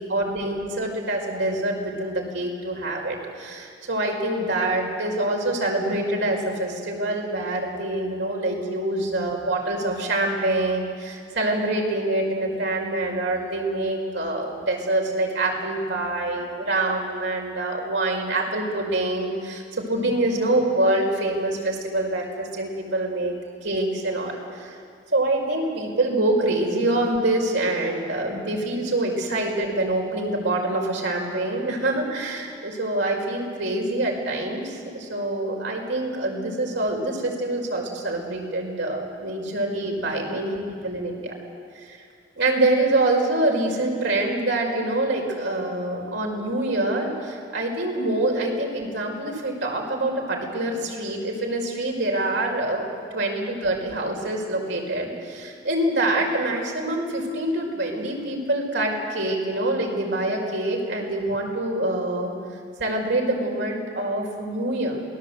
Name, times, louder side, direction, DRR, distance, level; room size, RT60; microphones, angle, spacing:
voice 1, 0.1-24.4 25.1-41.3 41.8-42.0 42.4-52.9 53.1-62.3 62.8-65.0, right 2 dB, 85° right, 0 dB, 5.3 m, -25 dB
27.5 x 19.0 x 8.2 m, 2.2 s
head